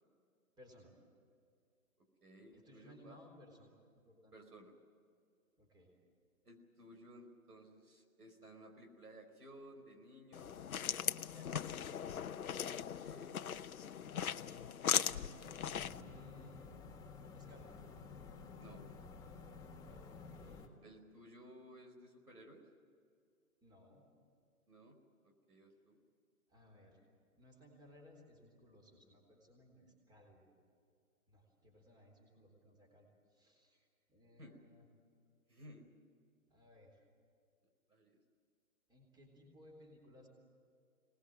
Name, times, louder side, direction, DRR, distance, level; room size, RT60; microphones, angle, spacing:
voice 1, 0.6-0.9 2.5-4.4 5.6-5.9 11.3-11.8 14.8-16.8 17.4-17.8 19.9-20.7 23.6-24.0 26.5-27.0 27.3-30.5 31.3-34.9 36.5-37.0 38.9-40.3, left 1 dB, 10° right, 2 dB, 3.7 m, -61 dB
voice 2, 2.2-3.2 4.3-4.7 6.4-10.7 13.0-13.9 18.6-18.8 20.8-22.6 24.7-25.0 25.2-26.0 34.4-34.6 35.5-35.9 37.9-38.2, equal, 85° right, 4 dB, 4.7 m, -57 dB
sound 1, 10.3-16.0, left 8 dB, 70° left, 0.9 m, -39 dB
sound 2, 15.4-20.7, left 4 dB, 10° left, 1.7 m, -52 dB
24.0 x 19.5 x 7.7 m, 2.3 s
figure-of-eight pair, 135°, 45 cm